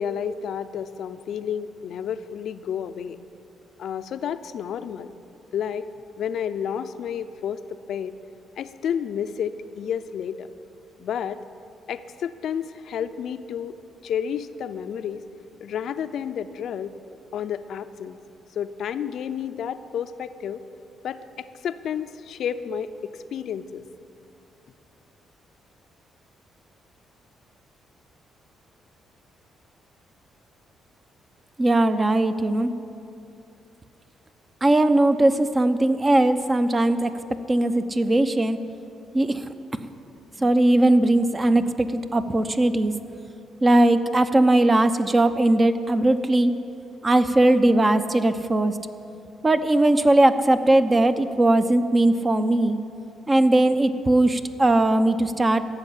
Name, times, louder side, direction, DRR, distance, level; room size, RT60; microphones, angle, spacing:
voice 1, 0.0-3.2 3.8-5.1 5.5-5.9 6.2-7.6 7.9-8.1 8.6-10.5 11.0-11.4 11.9-13.8 14.0-15.2 15.6-16.9 17.3-18.2 18.6-20.6 21.0-23.8, left 8 dB, 70° left, 10 dB, 0.5 m, -30 dB
voice 2, 31.6-32.7 34.6-37.1 37.5-38.6 39.1-39.5 40.4-42.9 43.6-46.5 47.0-48.8 49.4-52.8 53.3-55.7, right 1 dB, 25° right, 9 dB, 0.8 m, -19 dB
15.0 x 7.1 x 10.0 m, 2.6 s
cardioid pair, 90°, 0 cm